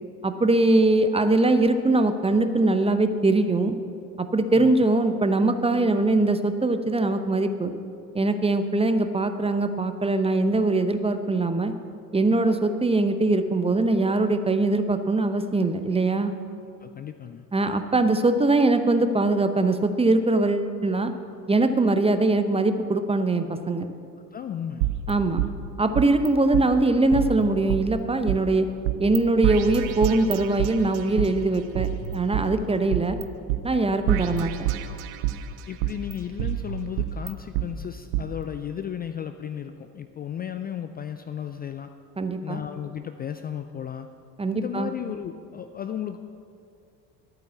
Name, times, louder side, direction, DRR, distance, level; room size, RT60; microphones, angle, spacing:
voice 1, 0.2-3.8 4.2-7.7 8.1-11.7 12.1-16.3 17.5-21.1 21.5-23.9 25.1-25.4 25.8-28.7 29.0-33.2 33.6-34.5 42.2-42.6 44.4-44.9, right 2 dB, 10° right, 9 dB, 0.7 m, -22 dB
voice 2, 16.8-17.5 24.3-24.8 35.7-41.9 42.4-44.1 44.5-46.2, left 9 dB, 20° left, 8 dB, 0.3 m, -34 dB
sound 1, 24.8-26.3 26.5-26.6 27.1-28.4 28.8-29.2 29.4-31.3 31.7-33.2 33.5-33.6 34.1-35.4 35.8-37.7 38.1-38.2, right 12 dB, 65° right, 0.8 m, -28 dB
11.5 x 8.8 x 6.8 m, 2.4 s
figure-of-eight pair, 60°, 48 cm